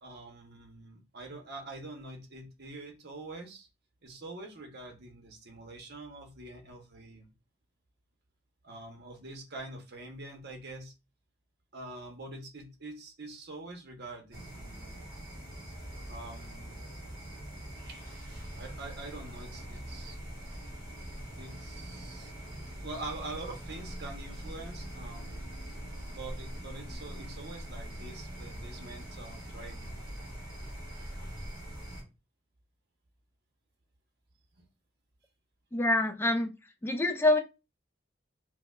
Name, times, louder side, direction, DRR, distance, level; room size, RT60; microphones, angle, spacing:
voice 1, 0.0-3.7 4.0-7.3 8.6-10.9 11.7-15.0 16.1-16.8 17.9-18.0 18.5-20.2 21.4-22.3 22.8-25.4 26.1-30.0 34.6-34.7, right 2 dB, 60° right, 3 dB, 0.9 m, -45 dB
sound 1, 14.3-32.0, equal, 20° right, 2.1 m, -43 dB
voice 2, 35.7-36.5 36.8-37.4, left 2 dB, 10° left, 7 dB, 0.4 m, -26 dB
4.7 x 2.1 x 2.3 m, 0.27 s
head